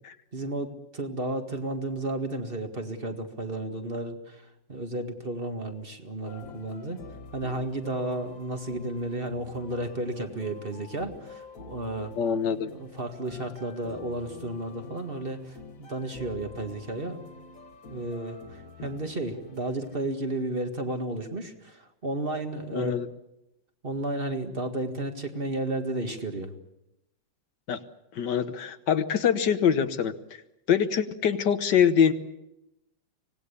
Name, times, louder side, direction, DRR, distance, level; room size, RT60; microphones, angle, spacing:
voice 1, 0.3-7.0 7.3-12.1 12.7-17.2 17.9-22.9 23.8-26.5, right 2 dB, 30° right, 5 dB, 2.0 m, -33 dB
sound 1, 6.3-20.1, left 4 dB, 50° left, 2.0 m, -47 dB
voice 2, 12.2-12.7 22.7-23.1 27.7-27.8 28.1-30.1 30.7-32.1, left 8 dB, 65° left, 11 dB, 1.7 m, -24 dB
25.0 x 19.0 x 8.5 m, 0.89 s
omnidirectional pair, 2.0 m